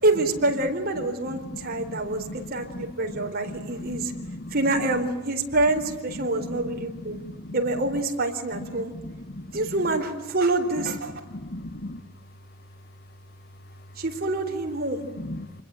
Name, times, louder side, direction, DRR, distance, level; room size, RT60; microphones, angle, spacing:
voice 1, 0.0-4.1 4.5-7.2 7.5-8.9 9.5-11.1 14.0-15.0, right 2 dB, 45° right, 4.3 m, -26 dB
voice 2, 1.5-2.0 2.3-2.4 3.1-3.2 4.2-4.5 7.2-7.3 9.0-9.1 11.5-12.0 15.2-15.6, left 1 dB, 50° left, 1.2 m, -36 dB
28.0 x 21.5 x 9.1 m
head